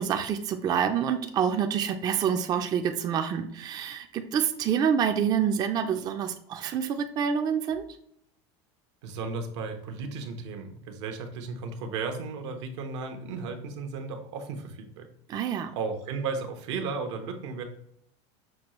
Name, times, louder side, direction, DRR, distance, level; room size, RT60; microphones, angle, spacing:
voice 1, 0.0-7.8 15.3-15.7, right 8 dB, 25° right, 6 dB, 0.3 m, -27 dB
voice 2, 9.0-15.1 15.7-17.6, right 4 dB, 80° right, 5 dB, 0.9 m, -34 dB
6.0 x 2.3 x 3.0 m, 0.71 s
supercardioid pair, 135°, 15 cm